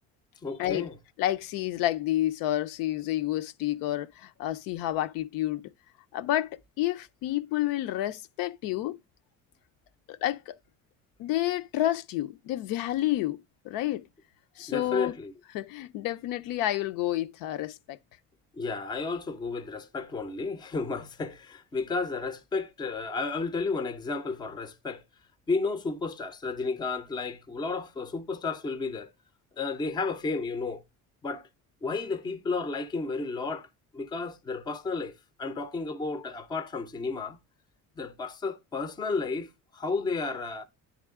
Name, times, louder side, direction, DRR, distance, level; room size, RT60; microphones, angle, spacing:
voice 1, 0.4-1.0 14.7-15.3 18.5-25.0 25.5-29.1 29.6-30.8 31.2-31.5 31.8-33.7 33.9-35.1 35.4-37.4 38.0-40.7, left 4 dB, 15° left, 0.4 m, -32 dB
voice 2, 1.2-5.7 6.1-9.0 10.1-10.6 11.2-13.4 13.6-14.1 14.6-15.1 15.5-18.0, left 14 dB, 75° left, 0.6 m, -29 dB
9.8 x 3.6 x 3.6 m
cardioid pair, 170°, 33 cm